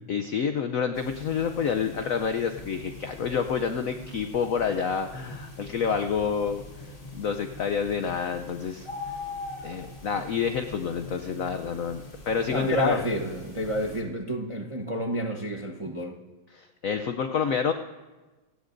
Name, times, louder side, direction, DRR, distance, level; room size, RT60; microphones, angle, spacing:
voice 1, 0.1-6.6 7.1-8.9 9.6-13.0 16.5-17.7, left 6 dB, 80° left, 7 dB, 0.7 m, -28 dB
sound 1, 0.9-14.0, left 2 dB, 25° left, 2.3 m, -43 dB
voice 2, 12.5-16.2, right 1 dB, 35° right, 0 dB, 0.5 m, -30 dB
27.0 x 16.5 x 2.6 m, 1.2 s
omnidirectional pair, 2.2 m